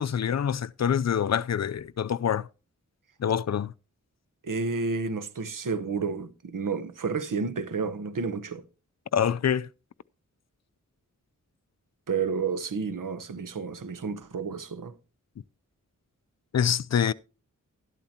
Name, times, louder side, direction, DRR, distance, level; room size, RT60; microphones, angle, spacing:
voice 1, 0.0-2.5 3.2-3.7 9.1-9.7 16.5-17.1, left 8 dB, 55° left, 0.5 m, -25 dB
voice 2, 4.4-8.6 12.1-14.9, right 5 dB, 75° right, 0.9 m, -31 dB
12.0 x 12.0 x 2.8 m
wide cardioid pair, 80°, 32 cm